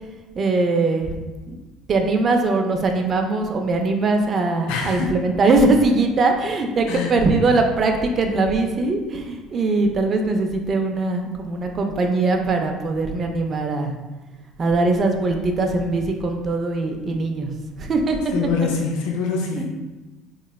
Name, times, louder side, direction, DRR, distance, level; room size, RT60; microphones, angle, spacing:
voice 1, 0.3-1.1 1.5-1.6 1.9-13.9 14.6-17.5 17.8-18.2 19.6-19.7, right 3 dB, 45° right, 4 dB, 0.5 m, -21 dB
voice 2, 4.7-5.1 6.9-7.1 18.3-19.6, left 5 dB, 75° left, 1 dB, 0.5 m, -24 dB
3.0 x 2.9 x 2.3 m, 1.2 s
hypercardioid pair, 70°, 0 cm